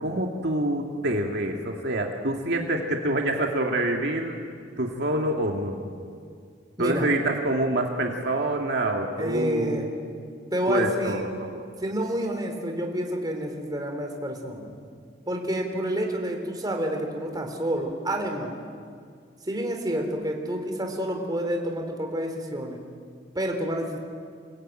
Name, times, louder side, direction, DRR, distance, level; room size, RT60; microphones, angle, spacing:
voice 1, 0.0-4.4 4.8-5.8 6.8-9.9 10.7-11.6, right 1 dB, 60° right, 2 dB, 2.2 m, -26 dB
voice 2, 6.8-7.1 9.2-9.8 10.5-11.3 11.8-14.7 15.3-18.6 19.4-22.8 23.3-24.0, equal, 20° right, 3 dB, 3.5 m, -29 dB
28.5 x 20.0 x 9.1 m, 2.2 s
head